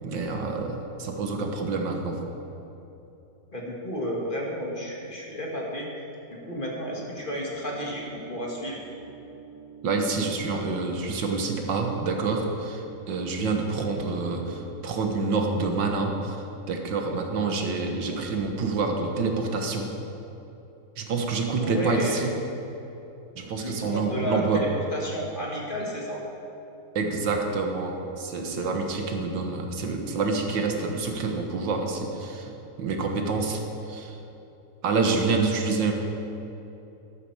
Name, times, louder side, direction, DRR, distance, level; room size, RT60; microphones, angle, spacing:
voice 1, 0.0-2.2 9.8-16.4 16.7-19.9 21.0-22.3 23.4-24.7 27.0-33.6 33.9-34.2 34.8-35.9, right 4 dB, 85° right, 3 dB, 2.0 m, -27 dB
voice 2, 3.5-5.9 6.3-8.8 21.6-22.3 23.6-26.2, equal, 30° left, -3 dB, 2.0 m, -32 dB
sound 1, 6.3-17.8, right 6 dB, 60° right, 2.5 m, -48 dB
12.5 x 12.0 x 4.8 m, 3.0 s
omnidirectional pair, 1.9 m